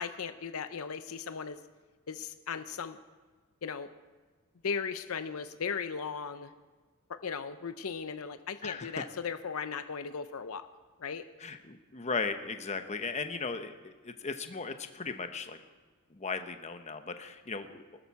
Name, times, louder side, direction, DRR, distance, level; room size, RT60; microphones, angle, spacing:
voice 1, 0.0-1.6 2.1-3.0 3.6-3.9 4.6-6.5 7.1-10.6 11.0-11.3, left 6 dB, 70° left, 10 dB, 0.6 m, -37 dB
voice 2, 8.6-9.0 11.4-15.6 16.1-17.9, left 4 dB, 30° left, 8 dB, 0.9 m, -37 dB
20.0 x 13.0 x 4.7 m, 1.4 s
head